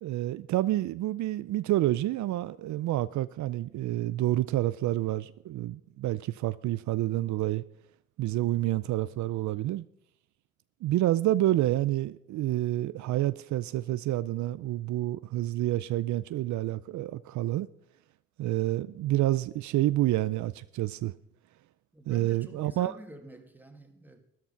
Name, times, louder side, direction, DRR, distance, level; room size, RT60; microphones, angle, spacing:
voice 1, 0.0-7.6 8.2-9.8 10.8-17.7 18.4-21.1 22.1-22.9, right 15 dB, 70° right, 0.5 m, -28 dB
voice 2, 21.9-24.2, right 1 dB, 5° right, 2.1 m, -48 dB
13.5 x 11.0 x 5.7 m
cardioid pair, 90°, 30 cm